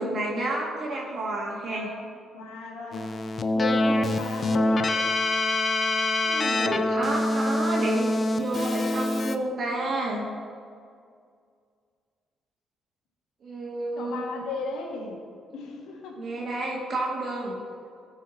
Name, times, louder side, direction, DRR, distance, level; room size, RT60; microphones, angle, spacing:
voice 1, 0.0-1.9 3.8-4.1 6.2-10.3 13.4-14.2 16.2-17.6, right 2 dB, 55° right, -2 dB, 1.8 m, -30 dB
voice 2, 1.6-2.1 2.3-3.1 3.5-4.9 13.9-15.2 15.5-16.2, left 4 dB, 90° left, 0 dB, 1.5 m, -35 dB
Keyboard (musical), 2.9-9.4, left 2 dB, 40° left, 0.5 m, -25 dB
14.0 x 4.9 x 4.2 m, 2.2 s
cardioid pair, 90°, 0 cm